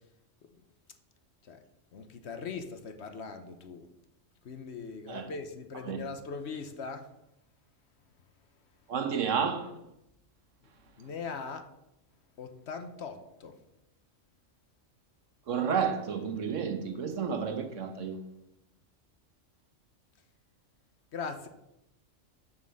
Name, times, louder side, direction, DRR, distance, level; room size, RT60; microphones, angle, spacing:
voice 1, 1.9-3.9 4.4-7.0 11.0-11.6 12.4-13.5 21.1-21.5, left 5 dB, 60° left, 1.1 m, -40 dB
voice 2, 8.9-9.7 15.5-18.2, right 6 dB, 70° right, 1.4 m, -31 dB
7.3 x 6.4 x 6.3 m
omnidirectional pair, 1.3 m